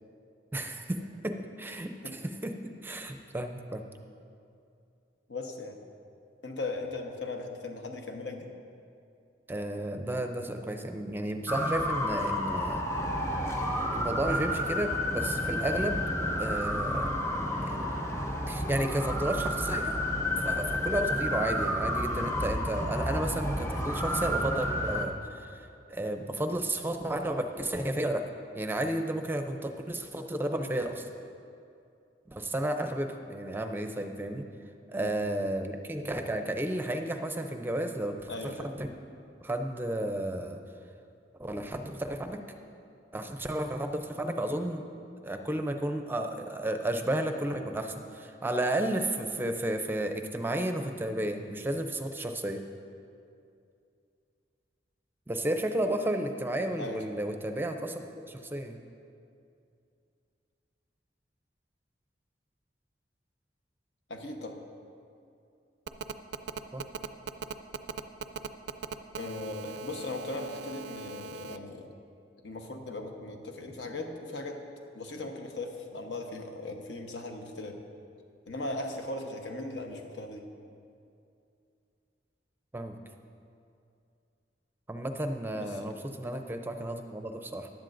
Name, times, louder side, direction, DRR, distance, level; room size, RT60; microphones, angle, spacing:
voice 1, 0.5-1.0 1.2-2.5 2.8-3.8 9.5-12.8 13.9-16.0 16.4-17.1 17.6-17.8 18.5-20.0 20.4-28.2 28.5-31.1 32.3-34.5 34.9-38.3 38.8-38.9 39.4-40.6 41.4-42.4 43.1-44.8 45.2-52.6 55.3-58.0 58.3-58.8 66.7-66.8 82.7-83.0 84.9-87.7, right 1 dB, 10° right, 6 dB, 0.5 m, -32 dB
voice 2, 5.3-5.8 6.4-8.5 22.1-22.3 34.9-35.3 38.3-38.7 56.8-57.0 64.1-64.6 69.2-71.9 72.4-74.6 74.9-77.8 78.5-80.4 85.6-86.0, left 2 dB, 80° left, 3 dB, 1.0 m, -38 dB
sound 1, 11.5-25.1, equal, 15° left, 0.8 m, -30 dB
Telephone, 65.9-71.6, right 5 dB, 75° right, 0.4 m, -39 dB
15.0 x 11.0 x 2.6 m, 2.5 s
head